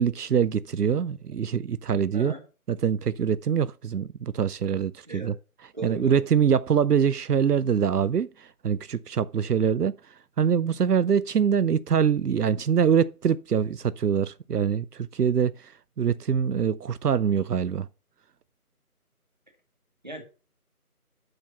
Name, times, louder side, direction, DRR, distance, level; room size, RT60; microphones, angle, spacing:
voice 1, 0.0-2.3 2.7-5.3 5.8-9.9 10.4-17.9, right 7 dB, 85° right, 0.6 m, -24 dB
voice 2, 5.7-6.2 20.0-20.2, right 1 dB, 30° right, 1.9 m, -37 dB
7.8 x 5.9 x 5.7 m
figure-of-eight pair, 175°, 46 cm